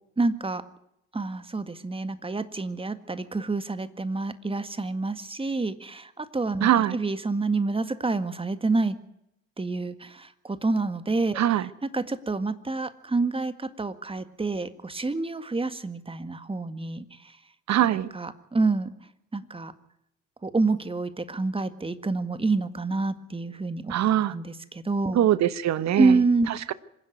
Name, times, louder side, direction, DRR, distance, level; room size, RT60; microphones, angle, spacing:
voice 1, 0.2-0.6 1.1-9.0 9.6-11.4 11.9-17.4 17.9-18.9 19.3-19.7 20.4-23.9 24.3-25.2 26.0-26.5, right 3 dB, 15° right, 11 dB, 1.8 m, -28 dB
voice 2, 6.6-7.0 11.3-11.7 17.7-18.1 23.9-24.3 25.1-26.2 26.5-26.7, right 11 dB, 45° right, 16 dB, 1.2 m, -22 dB
26.0 x 11.0 x 9.6 m, 0.78 s
hypercardioid pair, 55°, 38 cm